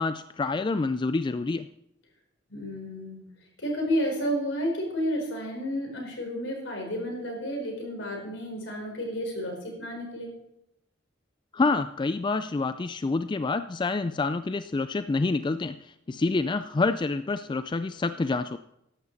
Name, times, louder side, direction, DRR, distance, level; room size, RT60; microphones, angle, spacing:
voice 1, 0.0-1.7 11.5-18.6, left 3 dB, 25° left, 11 dB, 0.3 m, -27 dB
voice 2, 2.5-3.3 3.6-10.3, equal, 75° left, 0 dB, 4.6 m, -31 dB
14.0 x 11.0 x 4.1 m, 0.81 s
head